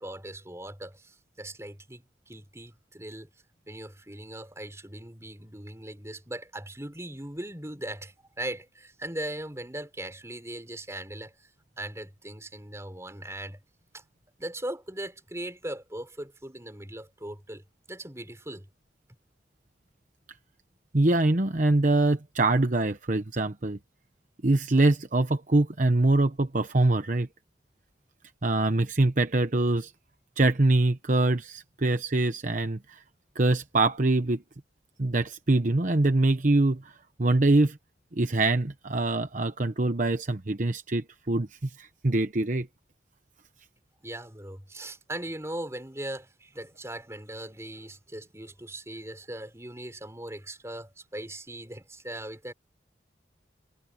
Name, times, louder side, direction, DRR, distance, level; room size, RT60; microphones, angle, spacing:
voice 1, 0.0-3.3 3.7-11.3 11.8-13.6 13.9-14.0 14.4-17.6 17.9-18.7 44.0-52.5, right 1 dB, 15° right, 4.0 m, -39 dB
voice 2, 20.9-23.8 24.4-27.3 28.4-29.9 30.4-33.0 33.3-34.4 35.0-36.9 37.2-37.8 38.1-42.7, right 2 dB, 45° right, 1.0 m, -24 dB
head